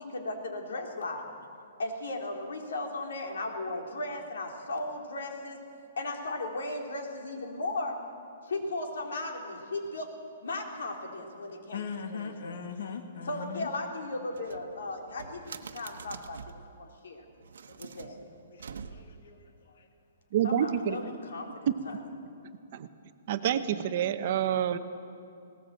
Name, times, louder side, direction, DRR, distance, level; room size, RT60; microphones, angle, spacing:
voice 1, 0.0-1.3 1.8-5.6 6.0-8.0 8.5-10.2 10.4-12.6 13.3-16.4 16.8-17.2 17.8-18.3 20.4-22.0, left 2 dB, 85° left, 1 dB, 3.7 m, -36 dB
voice 2, 11.5-13.7 17.7-18.0 18.5-19.9, left 6 dB, 65° left, 5 dB, 1.6 m, -41 dB
sound 1, 14.3-16.7 17.4-19.3, right 6 dB, 80° right, 1.1 m, -46 dB
voice 3, 20.3-21.0 22.7-22.9 23.3-24.8, right 9 dB, 35° right, 10 dB, 0.8 m, -28 dB
19.0 x 18.5 x 7.7 m, 2.5 s
hypercardioid pair, 175°, 0 cm